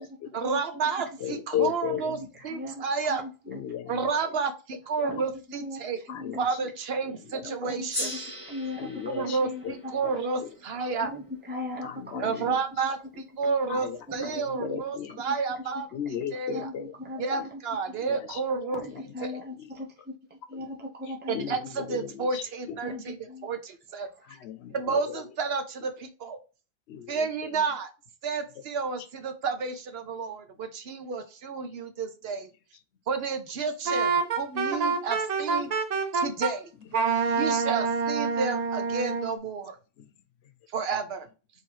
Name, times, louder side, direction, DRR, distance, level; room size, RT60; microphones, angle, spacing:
voice 1, 0.3-3.2 3.9-6.0 6.4-8.1 9.1-11.1 12.2-15.9 16.3-16.7 17.2-19.3 21.3-23.2 23.4-24.1 24.7-26.4 27.1-27.9 28.2-32.5 33.1-35.7 36.1-36.7 37.4-39.8 40.7-41.3, right 4 dB, 70° right, 1.0 m, -31 dB
voice 2, 1.2-2.2 3.5-4.4 6.1-6.4 7.3-7.7 8.8-9.4 9.6-9.8 10.0-10.5 11.8-12.6 13.7-15.3 15.9-17.0 17.4-17.5 18.1-18.4 18.7-19.0 19.3-19.7 20.5-20.7 21.3-22.8 24.3-25.3 26.9-27.6 37.3-37.4 40.0-40.1, left 10 dB, 85° left, 0.9 m, -36 dB
voice 3, 1.9-3.3 5.0-5.8 6.2-6.5 7.3-8.1 8.5-9.9 10.7-12.5 13.4-13.5 14.1-14.9 15.3-15.4 16.5-17.6 18.0-18.1 18.7-21.6 22.8-23.5, left 1 dB, 10° right, 0.9 m, -39 dB
Gong, 7.9-12.6, left 1 dB, 20° left, 1.9 m, -40 dB
Wind instrument woodwind instrument, 33.9-36.5 36.9-39.3, right 5 dB, 50° right, 0.6 m, -27 dB
4.5 x 3.0 x 3.0 m
omnidirectional pair, 1.1 m